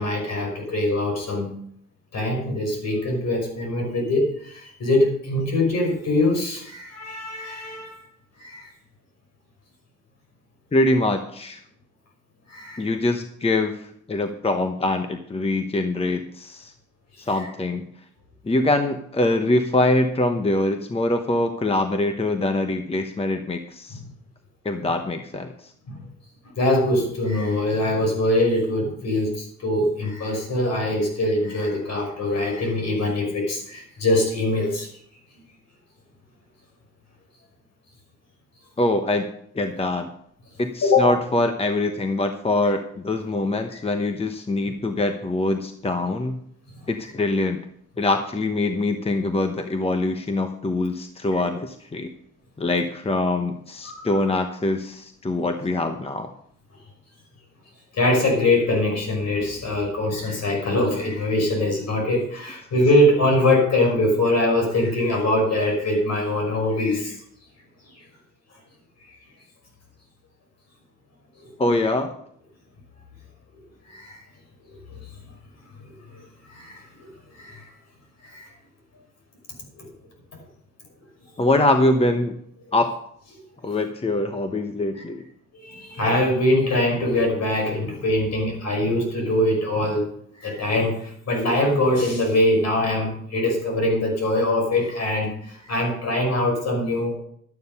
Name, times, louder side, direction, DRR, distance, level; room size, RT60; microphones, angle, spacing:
voice 1, 0.0-1.5 2.1-7.9 8.4-8.7 12.5-12.8 23.9-24.0 25.9-26.0 26.6-34.9 40.8-41.1 46.8-46.9 51.3-51.4 53.8-54.1 57.9-67.2 73.9-74.2 76.1-76.2 76.5-76.9 77.3-77.7 78.2-78.5 79.8-79.9 85.0-85.1 85.5-90.1 90.4-97.1, left 1 dB, 60° left, 1 dB, 5.8 m, -23 dB
voice 2, 10.7-11.6 12.8-16.7 17.2-17.8 18.4-24.0 24.6-25.7 38.8-39.3 39.5-40.1 40.6-46.4 46.9-47.6 48.0-52.1 52.6-56.3 71.6-72.1 81.4-82.4 82.7-82.9 83.6-85.2, left 2 dB, 20° left, 6 dB, 1.0 m, -23 dB
12.0 x 9.2 x 5.4 m, 0.66 s
cardioid pair, 90°, 30 cm